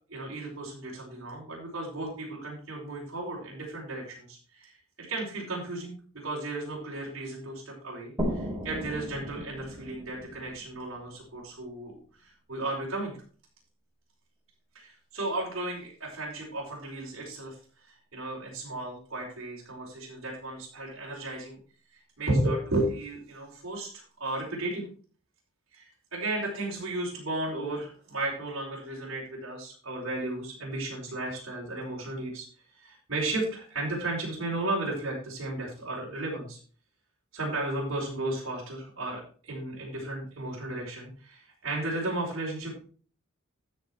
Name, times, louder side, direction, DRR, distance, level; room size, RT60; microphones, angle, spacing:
voice 1, 0.1-5.9 6.2-13.1 14.7-21.6 21.9-24.8 25.7-32.5 32.7-36.6 37.3-42.8, right 2 dB, 65° right, -5 dB, 5.1 m, -34 dB
sound 1, 8.2-11.7, equal, 20° right, 5.1 m, -36 dB
13.5 x 6.5 x 4.5 m, 0.42 s
head